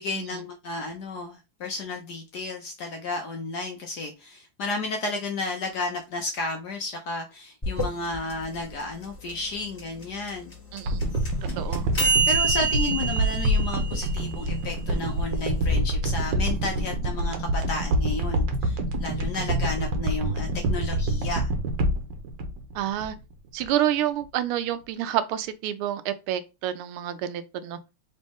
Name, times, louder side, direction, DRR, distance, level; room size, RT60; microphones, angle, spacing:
voice 1, 0.0-10.5 12.3-21.5, left 3 dB, 65° left, 1.0 m, -32 dB
sound 1, 7.6-15.8, right 3 dB, 10° left, 1.2 m, -28 dB
voice 2, 10.7-11.1 11.6-11.9 22.7-23.1 23.5-27.8, right 11 dB, 80° right, 1.4 m, -28 dB
sound 2, 10.8-23.3 23.6-23.7, right 1 dB, 65° right, 1.3 m, -26 dB
4.1 x 3.2 x 3.4 m
omnidirectional pair, 2.4 m